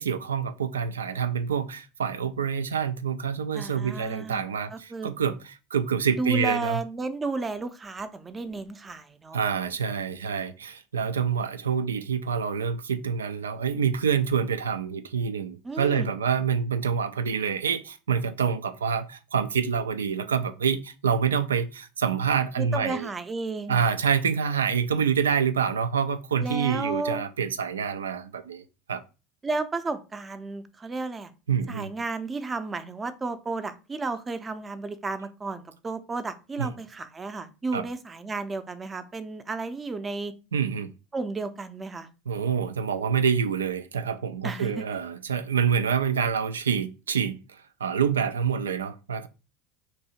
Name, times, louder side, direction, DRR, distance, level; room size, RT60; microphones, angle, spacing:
voice 1, 0.0-6.8 9.3-23.1 23.7-29.0 31.5-31.9 36.6-36.7 37.7-37.9 40.5-40.9 42.3-47.4 47.8-49.3, right 7 dB, 90° right, 0.3 m, -27 dB
voice 2, 3.5-5.1 6.2-9.4 15.6-16.1 22.6-23.8 26.4-27.2 29.4-31.3 31.7-40.3 41.1-42.1 44.4-44.8, right 3 dB, 20° right, 0.5 m, -33 dB
2.7 x 2.7 x 4.2 m
hypercardioid pair, 85°, 0 cm